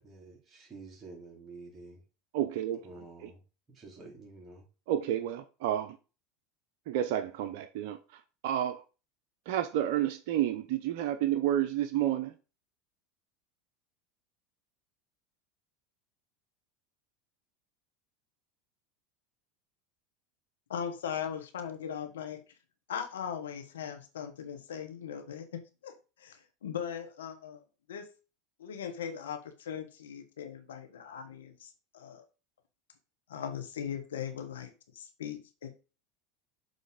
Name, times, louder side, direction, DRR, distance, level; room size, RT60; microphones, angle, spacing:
voice 1, 0.0-2.0 2.8-3.4 3.7-4.6, right 3 dB, 30° right, 3.6 m, -49 dB
voice 2, 2.3-2.9 3.2-3.3 4.9-6.0 6.9-8.8 9.5-12.3, right 11 dB, 65° right, 0.7 m, -30 dB
voice 3, 20.7-22.4 22.9-27.6 27.9-28.1 28.6-32.2 33.3-35.7, left 8 dB, 80° left, 1.1 m, -39 dB
6.6 x 4.0 x 5.1 m
hypercardioid pair, 90°, 0 cm